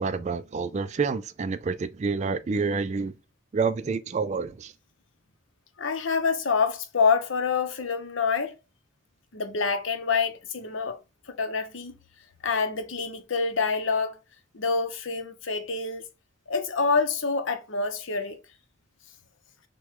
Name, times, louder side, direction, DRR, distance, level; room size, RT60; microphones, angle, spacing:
voice 1, 0.0-3.1 3.5-4.7, right 4 dB, 35° right, 0.4 m, -28 dB
voice 2, 5.8-8.5 9.3-11.0 11.3-11.9 12.4-14.2 14.5-16.1 16.5-18.4, left 5 dB, 75° left, 0.9 m, -26 dB
6.0 x 2.3 x 3.6 m
head